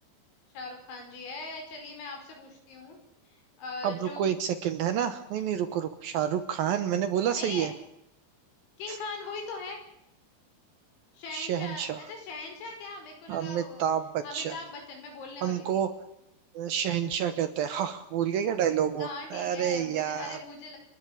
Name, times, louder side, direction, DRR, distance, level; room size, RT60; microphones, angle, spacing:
voice 1, 0.5-3.0 3.3-4.3 5.4-5.7 7.3-7.7 8.8-9.8 11.2-13.8 14.2-15.8 19.0-20.8, left 3 dB, 90° left, 3 dB, 7.4 m, -40 dB
voice 2, 3.8-7.7 8.9-9.0 11.3-12.0 13.3-14.5 15.4-15.9 16.5-20.4, right 9 dB, 70° right, 10 dB, 2.4 m, -29 dB
30.0 x 11.5 x 8.7 m, 0.82 s
omnidirectional pair, 5.2 m